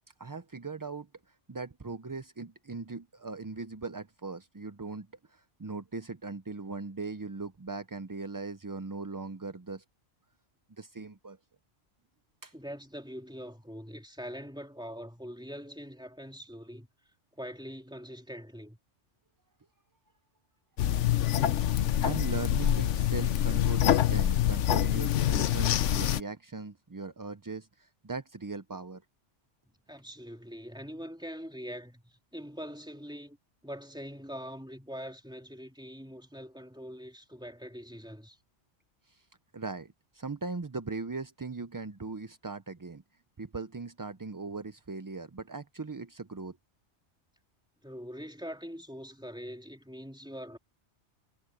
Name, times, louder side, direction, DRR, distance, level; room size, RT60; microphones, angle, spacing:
voice 1, 0.2-9.8 10.8-11.4 12.4-12.5 22.0-29.0 39.1-39.3 39.5-43.0 43.4-46.6, right 4 dB, 30° right, 0.4 m, -39 dB
voice 2, 12.5-16.9 17.4-18.8 29.9-33.4 33.6-38.4 47.8-50.6, equal, 5° right, 3.4 m, -43 dB
sound 1, 20.8-26.2, left 11 dB, 80° left, 1.1 m, -26 dB
omnidirectional pair, 1.2 m